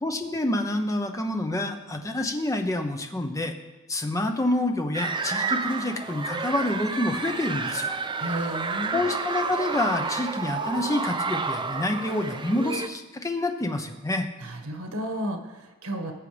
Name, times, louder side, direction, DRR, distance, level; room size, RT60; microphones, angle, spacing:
voice 1, 0.0-3.5 3.9-8.0 8.9-14.3, left 1 dB, 15° left, 5 dB, 0.9 m, -27 dB
sound 1, 4.9-12.9, right 4 dB, 20° right, 0.5 m, -30 dB
voice 2, 8.2-9.0 14.4-16.1, right 1 dB, 85° right, 4 dB, 1.6 m, -32 dB
19.5 x 7.5 x 3.4 m, 1.2 s
head